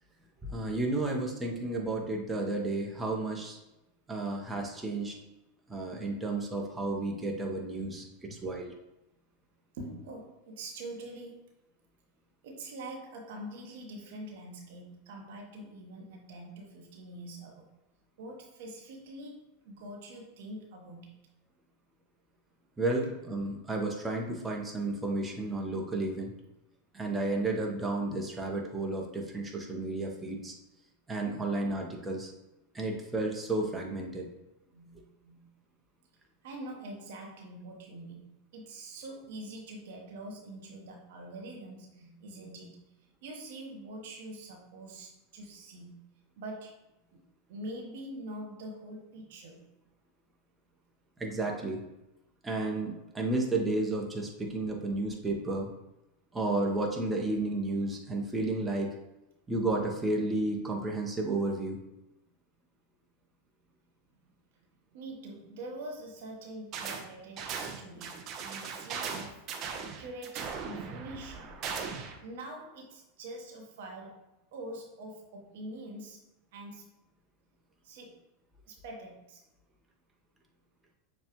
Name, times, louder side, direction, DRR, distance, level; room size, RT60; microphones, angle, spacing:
voice 1, 0.4-3.6 4.1-5.1 5.7-8.0 8.3-8.7 22.8-26.3 26.9-30.5 31.1-32.3 32.7-34.3 51.2-51.8 52.4-55.7 56.3-58.9 59.5-61.8, right 2 dB, 15° right, 0 dB, 0.9 m, -32 dB
voice 2, 9.7-11.4 12.4-17.7 18.2-21.2 34.7-35.6 36.4-42.8 43.2-46.0 46.4-46.8 47.1-47.2 47.5-49.6 64.9-71.5 72.2-76.2 76.5-76.9 77.8-78.2 78.7-79.4, right 1 dB, 70° right, 1 dB, 0.9 m, -45 dB
sound 1, 66.7-67.1 67.4-72.2, right 6 dB, 45° right, 0.6 m, -38 dB
6.8 x 2.3 x 2.9 m, 0.94 s
hypercardioid pair, 95°, 0 cm